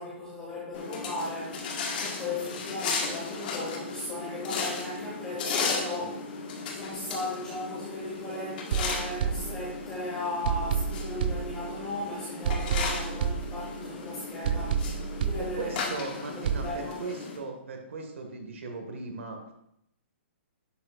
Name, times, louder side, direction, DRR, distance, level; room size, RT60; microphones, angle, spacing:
voice 1, 0.0-1.7 2.0-6.2 6.7-15.7 16.2-17.0, left 2 dB, 15° left, -6 dB, 1.8 m, -37 dB
sound 1, 0.7-17.4, left 4 dB, 45° left, 1.6 m, -35 dB
sound 2, 8.7-10.0 10.4-12.0 12.4-14.0 14.4-16.0 16.4-16.7, right 7 dB, 50° right, 0.4 m, -31 dB
voice 2, 15.4-19.4, right 3 dB, 80° right, 4 dB, 1.8 m, -38 dB
10.5 x 6.4 x 2.5 m, 0.79 s
hypercardioid pair, 165°, 7 cm